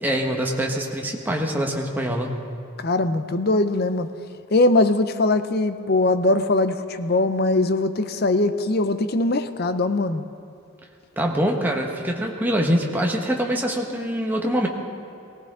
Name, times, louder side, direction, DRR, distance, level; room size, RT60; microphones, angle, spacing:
voice 1, 0.0-2.3 11.2-14.7, equal, 10° right, 0 dB, 1.3 m, -24 dB
voice 2, 2.8-4.1 4.5-10.2, left 2 dB, 50° left, 10 dB, 0.6 m, -21 dB
18.5 x 17.5 x 3.8 m, 2.6 s
head